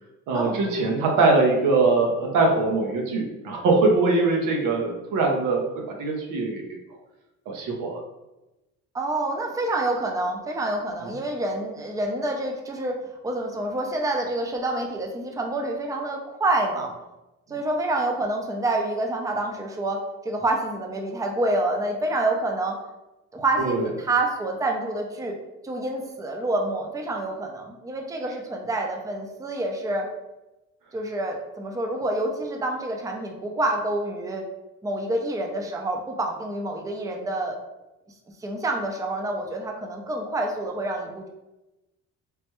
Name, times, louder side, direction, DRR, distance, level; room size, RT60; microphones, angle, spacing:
voice 1, 0.3-6.8 7.5-8.0 23.6-23.8, right 3 dB, 90° right, 0 dB, 0.7 m, -22 dB
voice 2, 8.9-16.9 17.5-22.8 23.3-25.4 25.6-30.1 30.9-34.4 34.8-37.6 38.4-41.3, right 2 dB, 10° right, 2 dB, 0.4 m, -27 dB
3.2 x 2.1 x 2.9 m, 1.0 s
cardioid pair, 90°, 30 cm